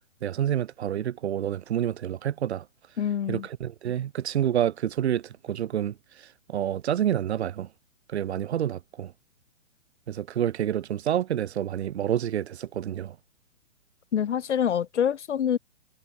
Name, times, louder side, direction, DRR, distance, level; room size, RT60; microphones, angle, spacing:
voice 1, 0.2-2.7 3.3-7.7 8.1-9.1 10.1-13.2, right 10 dB, 55° right, 7.2 m, -28 dB
voice 2, 3.0-3.5 14.1-15.6, left 9 dB, 60° left, 3.6 m, -26 dB
figure-of-eight pair, 120°, 39 cm